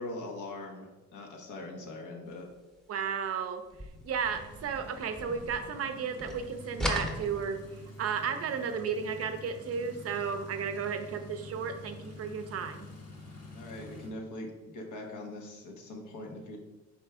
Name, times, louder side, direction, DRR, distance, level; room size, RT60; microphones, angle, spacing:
voice 1, 0.0-2.5 13.5-16.6, left 2 dB, 80° left, 2 dB, 0.9 m, -42 dB
voice 2, 2.9-3.6 4.0-7.6 8.0-12.9, right 6 dB, 55° right, 7 dB, 0.5 m, -33 dB
sound 1, 3.7-5.9 6.2-8.0, equal, ahead, 0.7 m, -37 dB
sound 2, 4.2-14.1, left 1 dB, 55° left, 1.1 m, -48 dB
4.3 x 3.2 x 3.5 m, 1.1 s
cardioid pair, 90°, 30 cm